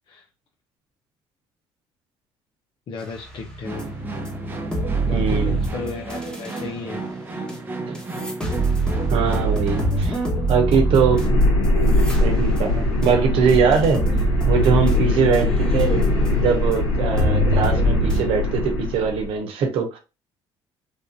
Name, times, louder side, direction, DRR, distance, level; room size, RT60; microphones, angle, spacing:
voice 1, 2.9-3.9 5.0-7.0 15.3-15.4, left 4 dB, 55° left, 0.6 m, -34 dB
sound 1, 3.3-6.6 7.5-7.6 8.0-16.3 16.7-16.8 17.2-18.2, right 3 dB, 10° left, 1.1 m, -24 dB
sound 2, 3.6-10.0, right 3 dB, 20° right, 0.7 m, -34 dB
voice 2, 5.1-5.6 7.9-8.0 9.1-10.2 10.5-11.5 12.2-14.0 14.5-16.0 16.4-20.0, right 6 dB, 70° right, 0.9 m, -21 dB
sound 3, 9.8-19.3, left 2 dB, 90° left, 1.4 m, -22 dB
3.4 x 2.5 x 2.6 m
cardioid pair, 100°, 10 cm